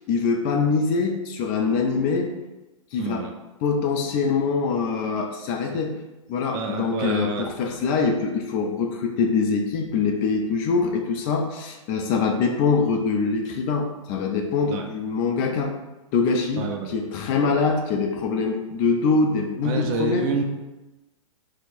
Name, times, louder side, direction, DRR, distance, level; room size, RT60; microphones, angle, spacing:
voice 1, 0.1-2.3 2.9-3.3 3.6-6.0 6.3-15.7 16.1-20.3, left 4 dB, 35° left, 2 dB, 0.5 m, -24 dB
voice 2, 3.0-3.3 6.5-7.5 14.7-14.8 16.6-16.9 19.6-20.4, right 5 dB, 30° right, 3 dB, 0.4 m, -28 dB
4.3 x 2.1 x 2.5 m, 1.0 s
hypercardioid pair, 115°, 17 cm